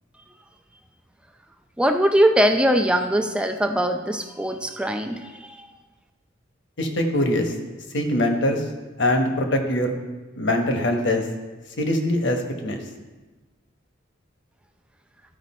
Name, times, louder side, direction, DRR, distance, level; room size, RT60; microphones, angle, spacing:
voice 1, 1.8-5.7, equal, 5° right, 6 dB, 0.4 m, -21 dB
voice 2, 6.8-7.5 7.9-8.6 9.0-9.9 10.4-11.2 11.8-12.8, left 1 dB, 60° left, 5 dB, 1.0 m, -22 dB
13.5 x 5.0 x 4.2 m, 1.2 s
head